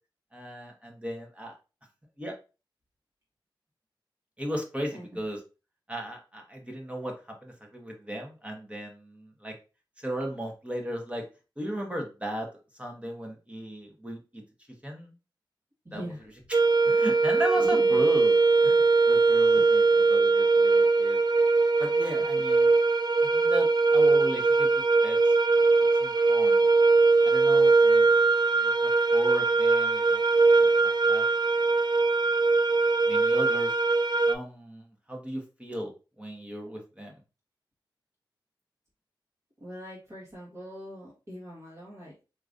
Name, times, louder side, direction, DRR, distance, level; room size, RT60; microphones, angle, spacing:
voice 1, 0.3-1.6 2.2-2.3 4.4-5.4 5.9-7.1 7.4-9.5 10.0-11.2 11.6-12.5 12.8-14.4 14.8-15.1 15.9-16.0 16.5-21.2 21.8-22.7 23.2-24.7 25.0-25.3 26.0-26.6 27.2-28.1 28.6-30.2 30.6-31.3 33.0-33.7 34.3-35.9 36.2-37.1, equal, 15° right, 1 dB, 1.1 m, -36 dB
voice 2, 15.8-16.2 17.6-17.8 39.6-42.2, equal, 35° right, -6 dB, 1.5 m, -42 dB
sound 1, 16.5-34.3, right 3 dB, 55° right, 0.4 m, -21 dB
3.7 x 2.9 x 2.5 m, 0.31 s
cardioid pair, 40°, 9 cm